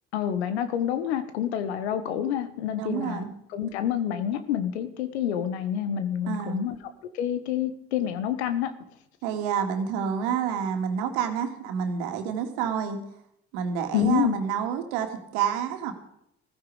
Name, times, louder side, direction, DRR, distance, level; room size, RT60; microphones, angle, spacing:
voice 1, 0.1-3.2 3.5-6.8 7.1-8.7 13.9-14.4, left 10 dB, 85° left, 12 dB, 1.3 m, -28 dB
voice 2, 2.8-3.3 6.3-6.6 9.2-13.0 13.5-15.9, right 7 dB, 80° right, 5 dB, 2.4 m, -28 dB
15.5 x 15.0 x 5.0 m, 0.74 s
hypercardioid pair, 50°, 32 cm